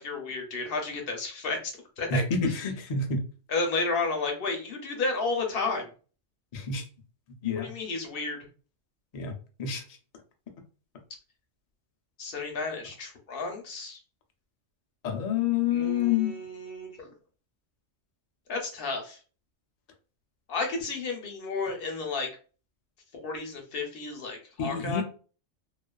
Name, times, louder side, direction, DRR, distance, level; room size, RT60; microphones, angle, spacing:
voice 1, 0.0-2.2 3.5-5.9 7.6-8.5 12.2-14.0 15.7-17.1 18.5-19.2 20.5-22.3 23.1-25.0, left 3 dB, 55° left, 3 dB, 0.7 m, -32 dB
voice 2, 2.1-3.2 6.5-6.8 7.4-7.7 9.1-9.3 9.6-9.8 15.0-16.4 24.6-25.0, left 6 dB, 85° left, 3 dB, 0.3 m, -28 dB
2.4 x 2.3 x 2.2 m, 0.38 s
omnidirectional pair, 1.3 m